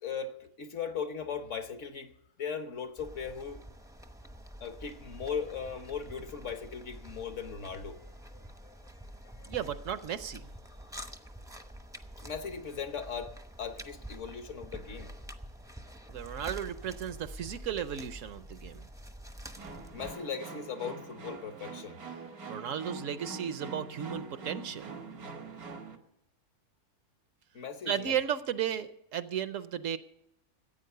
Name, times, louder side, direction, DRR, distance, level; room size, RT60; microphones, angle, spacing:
voice 1, 0.0-2.1 2.4-3.7 4.6-8.8 9.4-9.6 12.2-13.3 13.6-15.2 19.9-22.0 27.5-28.2, left 6 dB, 60° left, 1.3 m, -38 dB
sound 1, 3.0-20.1, equal, 5° right, 0.5 m, -47 dB
voice 2, 9.5-10.5 16.1-18.8 22.5-24.9 27.9-30.0, right 9 dB, 65° right, 1.0 m, -34 dB
sound 2, 19.6-26.0, right 3 dB, 90° right, 1.9 m, -44 dB
15.0 x 8.8 x 6.6 m
omnidirectional pair, 1.5 m